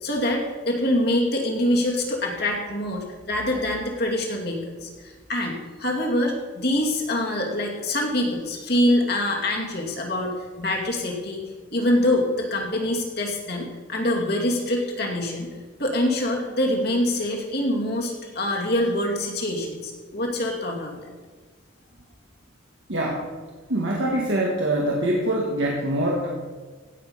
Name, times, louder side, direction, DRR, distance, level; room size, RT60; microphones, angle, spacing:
voice 1, 0.0-11.4 11.7-15.5 15.8-21.0, left 1 dB, 50° left, 0 dB, 2.5 m, -25 dB
voice 2, 22.9-23.3 23.7-26.3, right 1 dB, 70° right, -2 dB, 1.7 m, -24 dB
16.5 x 7.2 x 5.6 m, 1.4 s
head